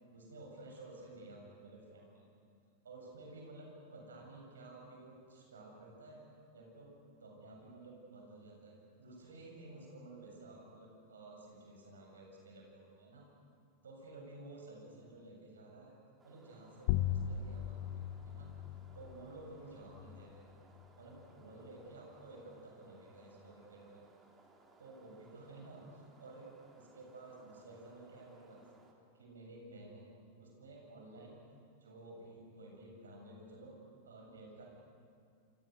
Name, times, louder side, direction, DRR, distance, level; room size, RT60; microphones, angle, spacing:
voice 1, 0.1-2.2 2.8-6.2 6.5-6.9 7.2-13.3 13.8-15.9 16.2-17.8 18.3-18.5 18.9-20.4 21.0-24.1 24.8-28.7 29.1-30.1 30.4-31.3 31.8-33.8 34.0-34.7, right 2 dB, 70° right, 0 dB, 7.7 m, -53 dB
sound 1, 16.2-28.9, right 3 dB, 15° right, 3.6 m, -65 dB
sound 2, 16.9-21.9, left 11 dB, 50° left, 1.0 m, -39 dB
28.5 x 26.5 x 6.6 m, 2.3 s
figure-of-eight pair, 90°, 0 cm